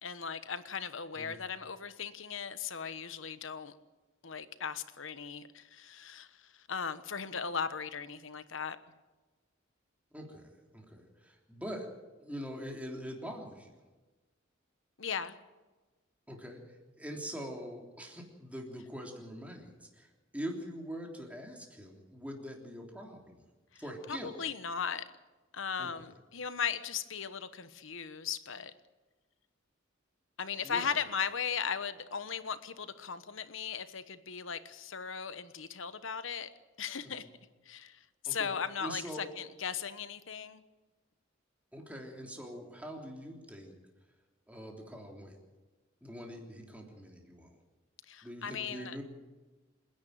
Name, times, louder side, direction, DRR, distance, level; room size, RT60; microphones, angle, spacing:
voice 1, 0.0-3.7 4.2-8.8 15.0-15.4 23.7-23.8 24.1-25.0 25.5-28.7 30.4-36.5 36.8-37.3 37.6-40.6 48.1-49.0, left 6 dB, 65° left, 12 dB, 1.2 m, -37 dB
voice 2, 10.1-11.9 12.2-13.7 16.3-16.6 17.0-20.1 20.3-23.4 23.8-24.3 25.8-25.9 30.6-30.9 37.0-37.2 38.2-38.5 38.8-39.3 41.7-43.7 44.5-45.4 46.0-47.6 48.2-49.0, equal, 5° right, 1 dB, 3.3 m, -43 dB
27.5 x 10.5 x 9.3 m, 1.2 s
head